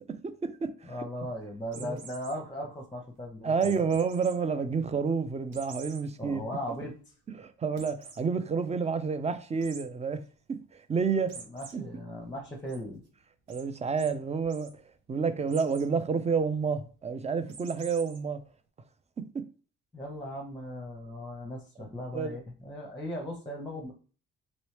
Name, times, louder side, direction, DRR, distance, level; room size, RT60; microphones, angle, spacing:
voice 1, 0.1-0.7 1.8-2.0 3.4-6.4 7.4-10.2 10.7-11.4 11.7-11.8 13.5-14.8 15.1-18.4 19.2-19.3 22.1-22.4, right 5 dB, 20° right, 0.4 m, -29 dB
voice 2, 0.8-4.0 6.2-7.0 11.3-13.0 19.9-23.9, equal, 10° left, 0.7 m, -38 dB
sound 1, 1.7-2.3 3.6-4.3 4.8-4.9 5.5-6.0 6.5-6.6 6.9-7.0 7.8-8.2 9.6-9.8 11.3-11.7 12.2-12.8 13.5-13.6 14.0-14.1 14.4-14.7 15.5-15.9 17.5-18.2, right 5 dB, 85° right, 1.0 m, -46 dB
3.1 x 3.0 x 3.1 m
cardioid pair, 90°, 30 cm